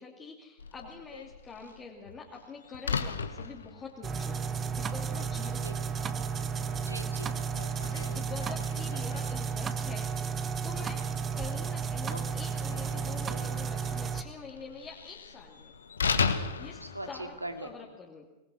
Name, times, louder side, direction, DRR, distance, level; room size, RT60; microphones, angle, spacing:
voice 1, 0.0-4.5 4.7-5.7 7.8-11.1 11.3-15.7 16.6-18.3, left 5 dB, 20° left, -2 dB, 2.6 m, -46 dB
Slam, 0.6-17.7, left 5 dB, 70° left, 1.4 m, -38 dB
sound 1, 4.0-14.2, right 6 dB, 25° right, 1.4 m, -33 dB
voice 2, 6.8-7.8 12.1-12.2 13.3-13.5 16.8-17.7, right 1 dB, 85° right, 6 dB, 2.4 m, -41 dB
24.0 x 19.5 x 6.3 m, 1.0 s
figure-of-eight pair, 90°, 0 cm